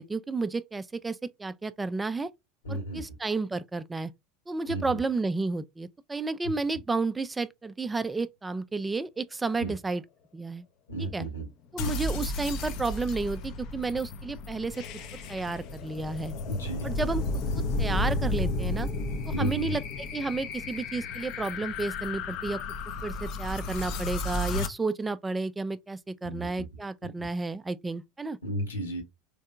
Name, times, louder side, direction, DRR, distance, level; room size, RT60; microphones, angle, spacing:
voice 1, 0.0-2.3 2.7-4.1 4.5-10.0 10.3-10.6 11.0-11.3 11.7-14.8 15.3-16.3 16.8-17.2 17.8-18.9 19.3-22.6 23.0-28.4, right 3 dB, 15° right, 0.3 m, -32 dB
voice 2, 2.6-3.0 4.7-5.0 6.4-6.8 9.6-9.7 10.9-11.5 16.5-16.9 19.3-19.7 26.2-26.7 27.0-27.3 28.4-29.0, right 1 dB, 80° left, 1.8 m, -33 dB
sound 1, 11.8-24.7, left 2 dB, 50° left, 0.5 m, -33 dB
3.5 x 3.2 x 2.3 m
figure-of-eight pair, 75°, 0 cm